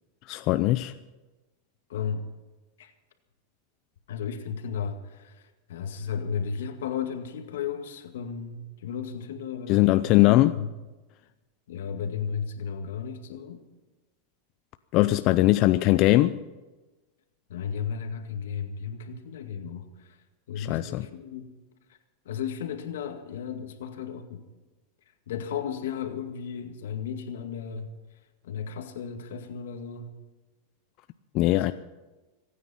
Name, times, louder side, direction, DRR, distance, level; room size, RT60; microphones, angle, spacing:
voice 1, 0.3-0.9 9.7-10.5 14.9-16.4 20.6-21.1 31.3-31.7, left 17 dB, 50° left, 11 dB, 0.6 m, -21 dB
voice 2, 1.9-2.2 2.8-2.9 4.1-10.7 11.7-13.6 17.5-20.2 20.5-21.5 22.3-24.4 25.3-27.9 28.4-30.1 31.7-31.8, left 7 dB, 85° left, 6 dB, 2.0 m, -34 dB
26.0 x 9.7 x 5.7 m, 1.2 s
supercardioid pair, 125°, 0 cm